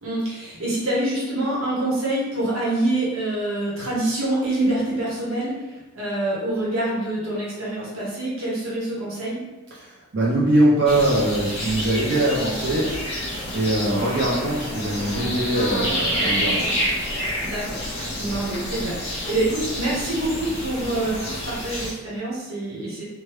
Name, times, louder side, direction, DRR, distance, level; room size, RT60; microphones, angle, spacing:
voice 1, 0.0-9.4 17.4-17.8 18.2-23.0, right 1 dB, 80° right, -6 dB, 1.1 m, -26 dB
voice 2, 9.7-12.9 13.5-16.7, right 1 dB, 50° right, -5 dB, 0.5 m, -22 dB
sound 1, 10.9-21.9, equal, 30° left, 0.7 m, -28 dB
3.2 x 2.2 x 3.0 m, 1.2 s
head